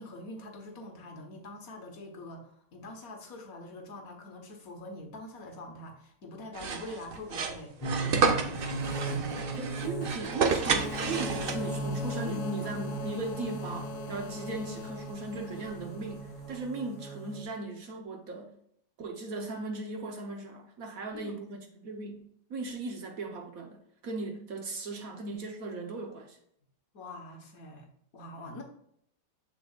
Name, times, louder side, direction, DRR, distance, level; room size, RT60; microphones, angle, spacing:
voice 1, 0.0-9.5 11.9-12.0 12.2-12.8 21.1-21.4 26.9-28.6, left 1 dB, 55° left, 2 dB, 1.5 m, -45 dB
sound 1, 6.5-11.9, right 5 dB, 90° right, 0.4 m, -30 dB
sound 2, 7.8-17.4, right 2 dB, 35° left, 2.5 m, -37 dB
sound 3, 8.7-16.6, left 8 dB, 85° left, 1.3 m, -44 dB
voice 2, 9.6-18.6 19.0-26.4, right 3 dB, 60° right, 4 dB, 1.3 m, -37 dB
6.9 x 6.8 x 2.4 m, 0.68 s
omnidirectional pair, 1.9 m